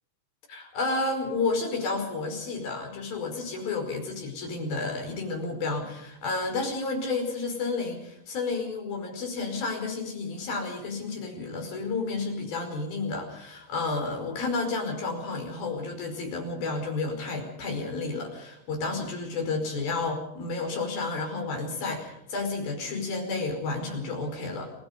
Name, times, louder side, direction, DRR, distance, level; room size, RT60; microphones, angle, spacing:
voice 1, 0.5-24.7, left 3 dB, 45° left, 3 dB, 6.6 m, -31 dB
28.5 x 19.0 x 5.3 m, 0.79 s
omnidirectional pair, 5.9 m